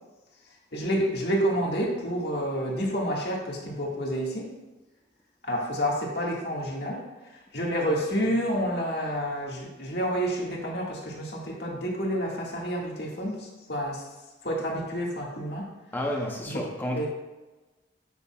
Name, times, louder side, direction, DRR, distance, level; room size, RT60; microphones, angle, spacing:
voice 1, 0.7-4.5 5.4-14.1 14.4-15.7 16.4-16.6 16.9-17.1, equal, 65° left, 1.8 m, -29 dB
voice 2, 15.9-17.1, left 1 dB, 10° left, 0.6 m, -30 dB
8.8 x 8.3 x 2.4 m
head